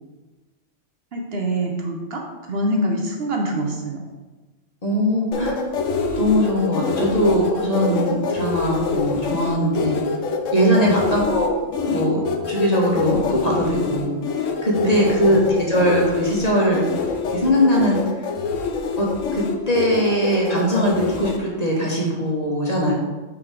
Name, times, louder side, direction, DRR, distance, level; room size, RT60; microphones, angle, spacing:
voice 1, 1.1-4.0 10.6-11.0 14.8-15.5, right 2 dB, 60° right, 1 dB, 1.0 m, -25 dB
voice 2, 4.8-5.6 6.2-10.0 10.5-11.5 11.8-12.2 12.5-14.1 14.6-16.8 17.3-18.3 19.0-22.9, equal, 35° left, -3 dB, 1.4 m, -20 dB
sound 1, 5.3-21.4, left 5 dB, 85° left, 1.0 m, -25 dB
6.1 x 3.9 x 4.9 m, 1.2 s
omnidirectional pair, 1.3 m